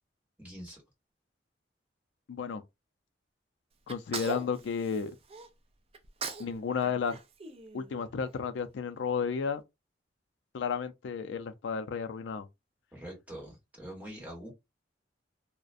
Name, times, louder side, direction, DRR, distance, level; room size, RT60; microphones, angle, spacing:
voice 1, 0.4-0.8 12.9-14.5, right 1 dB, 10° right, 1.3 m, -44 dB
voice 2, 2.3-2.6 3.9-5.1 6.4-7.2 7.7-9.6 10.5-12.5, left 6 dB, 70° left, 0.4 m, -32 dB
Sneeze, 3.9-5.5 5.9-6.5 6.8-8.3, right 4 dB, 35° right, 0.4 m, -40 dB
2.4 x 2.1 x 2.5 m
head